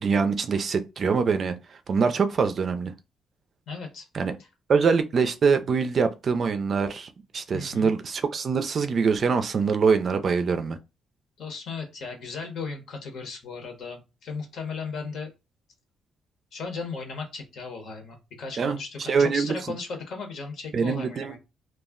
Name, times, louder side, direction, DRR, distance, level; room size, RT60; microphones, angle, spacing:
voice 1, 0.0-1.6 1.9-2.9 4.1-4.3 4.7-10.8 18.6-18.8 19.1-19.5 20.7-21.4, right 5 dB, 50° right, 0.4 m, -24 dB
voice 2, 3.7-4.0 4.4-4.5 7.5-7.9 11.4-15.3 16.5-21.4, left 4 dB, 70° left, 0.9 m, -36 dB
2.3 x 2.1 x 3.6 m
cardioid pair, 90°, 0 cm